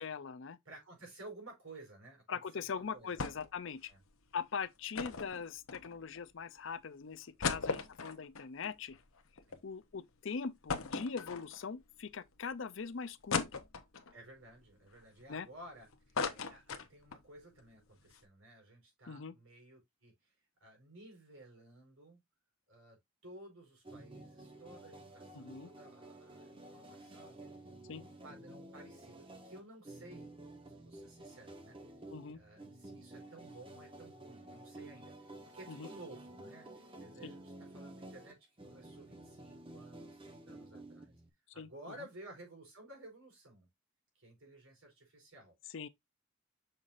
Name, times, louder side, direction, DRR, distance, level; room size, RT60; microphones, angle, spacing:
voice 1, 0.0-0.6 2.3-3.9 4.3-9.0 9.6-13.6 15.3-15.5 19.1-19.3 25.3-25.7 27.9-28.0 32.1-32.4 35.7-35.9 37.2-37.3 41.6-41.7 45.7-45.9, left 5 dB, 60° left, 0.5 m, -41 dB
voice 2, 0.6-3.2 3.9-4.0 7.5-7.7 9.5-9.6 14.1-20.3 20.6-22.2 22.7-27.4 27.8-30.3 30.7-31.8 32.3-41.1 41.5-43.7 44.1-45.5, right 1 dB, 80° right, 4.6 m, -55 dB
sound 1, 3.2-3.6 3.9-4.0 4.9-6.2 6.7-6.8 7.2-9.6 10.0-10.1 10.7-11.8 12.3-12.4 13.3-14.1 14.7-15.7 15.9-17.3 17.6-17.7 18.0-18.2, left 5 dB, 80° left, 0.9 m, -38 dB
sound 2, 23.8-41.3, right 1 dB, 25° right, 1.1 m, -52 dB
6.6 x 5.6 x 2.5 m
head